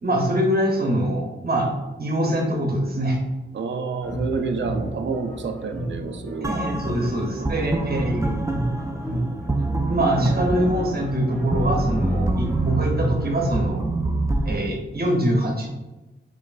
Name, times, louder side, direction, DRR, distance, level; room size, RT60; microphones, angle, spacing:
voice 1, 0.0-1.7 2.0-3.2 6.4-8.5 9.1-9.2 9.6-13.8 14.4-15.7, right 1 dB, 50° right, 0 dB, 0.9 m, -24 dB
voice 2, 3.5-6.6 7.0-7.6, right 4 dB, 70° right, 5 dB, 0.5 m, -29 dB
sound 1, 4.0-13.3, right 1 dB, 5° left, 1.0 m, -31 dB
sound 2, 6.4-14.6, right 2 dB, 15° right, 0.3 m, -26 dB
5.3 x 3.1 x 2.5 m, 1.1 s
wide cardioid pair, 105°, 20 cm